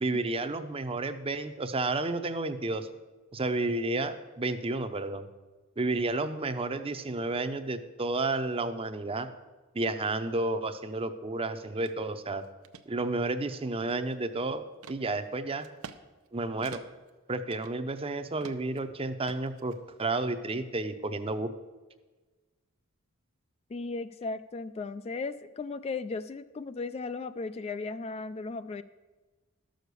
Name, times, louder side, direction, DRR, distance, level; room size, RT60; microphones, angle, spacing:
voice 1, 0.0-2.9 3.3-5.3 5.8-9.3 9.7-12.4 12.9-14.6 14.9-15.7 16.3-16.8 17.3-21.5, right 2 dB, 25° right, 10 dB, 0.7 m, -31 dB
sound 1, 11.8-12.0 12.4-12.8 13.4-14.3 14.8-15.0 15.6-16.0 16.3-16.4 16.6-17.1 17.5-18.1 18.4-18.8 19.3-20.1, right 6 dB, 80° right, 0.7 m, -48 dB
voice 2, 23.7-28.8, left 3 dB, 30° left, 12 dB, 0.3 m, -36 dB
13.0 x 6.5 x 6.8 m, 1.3 s
head